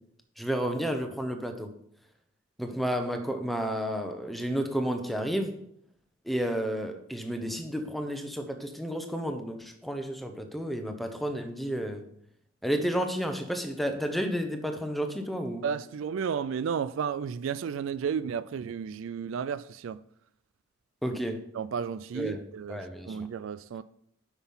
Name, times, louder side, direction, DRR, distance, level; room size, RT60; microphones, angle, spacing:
voice 1, 0.4-1.7 2.6-5.6 6.2-12.0 12.6-15.7 21.0-21.4 22.1-22.4 22.7-23.2, equal, ahead, 0.9 m, -31 dB
voice 2, 15.6-20.0 21.5-23.8, right 7 dB, 70° right, 0.3 m, -33 dB
8.0 x 6.0 x 5.5 m
head